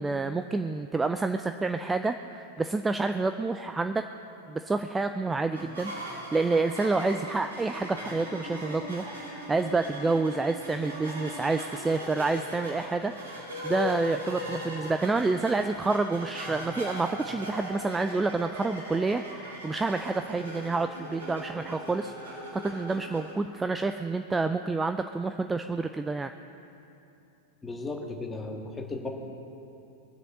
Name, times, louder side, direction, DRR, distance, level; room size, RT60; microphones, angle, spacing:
voice 1, 0.0-4.0 4.5-26.3, right 3 dB, 10° right, 8 dB, 0.4 m, -28 dB
sound 1, 5.5-23.3, equal, 75° right, 3.9 m, -39 dB
voice 2, 27.6-29.1, left 2 dB, 15° left, 1 dB, 1.8 m, -35 dB
22.5 x 7.6 x 6.5 m, 2.8 s
figure-of-eight pair, 90°, 0 cm